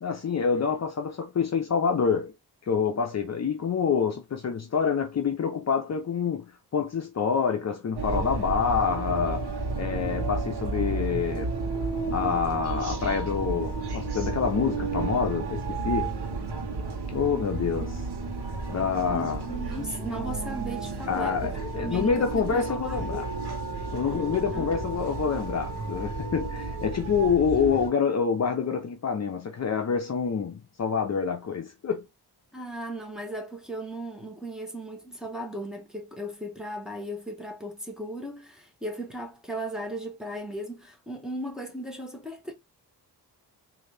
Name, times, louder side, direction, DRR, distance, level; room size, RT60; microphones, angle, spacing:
voice 1, 0.0-2.3 2.7-9.5 9.7-11.5 12.1-16.2 17.1-18.0 18.7-19.4 21.1-23.2 23.9-32.1, left 6 dB, 45° left, 0.6 m, -27 dB
sound 1, 8.0-27.9, right 3 dB, 80° right, 1.2 m, -32 dB
voice 2, 19.1-23.2 24.5-24.7 32.5-42.5, right 1 dB, ahead, 1.1 m, -36 dB
3.8 x 2.7 x 3.3 m
wide cardioid pair, 120°, 39 cm